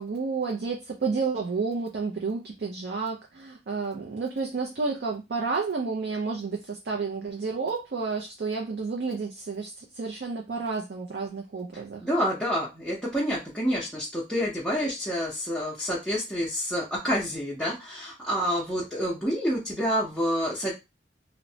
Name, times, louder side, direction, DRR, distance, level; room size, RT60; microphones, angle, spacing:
voice 1, 0.0-12.0, right 4 dB, 65° right, 0 dB, 0.4 m, -31 dB
voice 2, 12.0-20.7, equal, ahead, -7 dB, 0.6 m, -28 dB
3.0 x 2.0 x 2.7 m, 0.24 s
head